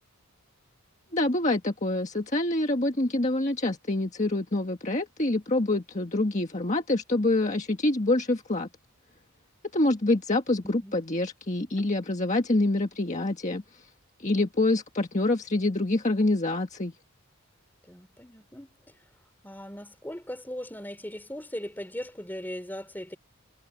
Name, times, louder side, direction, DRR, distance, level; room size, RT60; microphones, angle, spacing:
voice 1, 1.1-8.7 9.7-13.9 14.2-16.9, left 2 dB, 35° left, 1.6 m, -26 dB
voice 2, 10.6-11.0 17.8-19.0 19.4-23.2, equal, 10° left, 3.6 m, -39 dB
head